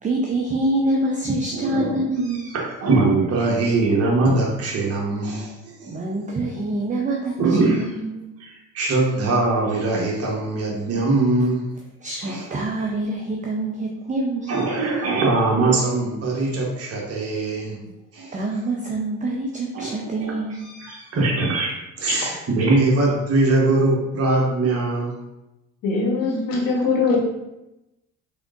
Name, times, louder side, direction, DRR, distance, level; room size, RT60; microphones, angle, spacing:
voice 1, 0.0-2.6 5.9-8.3 12.0-14.8 18.3-21.2, right 2 dB, 20° right, 0 dB, 0.5 m, -26 dB
voice 2, 1.6-2.0 2.8-6.0 7.4-7.9 8.4-11.6 12.2-12.4 12.8-12.9 14.5-17.8 18.1-18.4 19.7-20.4 20.8-21.7 22.0-25.1 26.8-26.9, right 2 dB, 40° right, -2 dB, 1.1 m, -22 dB
voice 3, 25.8-27.2, left 4 dB, 65° left, -1 dB, 1.2 m, -21 dB
3.6 x 3.5 x 2.5 m, 0.94 s
hypercardioid pair, 70°, 37 cm